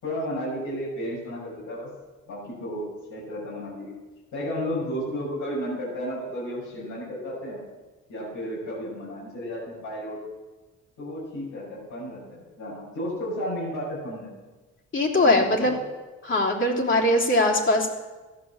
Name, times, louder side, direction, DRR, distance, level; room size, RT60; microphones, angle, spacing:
voice 1, 0.0-1.9 2.3-3.9 4.3-7.6 8.1-10.2 11.0-14.3 15.2-15.7, equal, 80° left, -8 dB, 6.5 m, -33 dB
voice 2, 14.9-15.7 16.2-17.9, left 1 dB, 40° left, -2 dB, 3.3 m, -21 dB
14.5 x 10.0 x 7.2 m, 1.2 s
cardioid pair, 90°, 30 cm